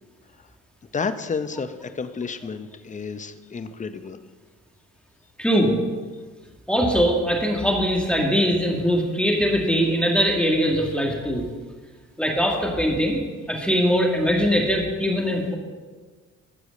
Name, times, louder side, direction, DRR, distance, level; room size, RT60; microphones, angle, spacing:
voice 1, 0.9-4.2, left 5 dB, 25° left, 10 dB, 0.7 m, -31 dB
voice 2, 5.4-5.7 6.7-11.5 12.2-13.2 13.5-15.5, equal, 5° left, -1 dB, 1.8 m, -21 dB
13.5 x 4.9 x 6.5 m, 1.4 s
cardioid pair, 90°, 30 cm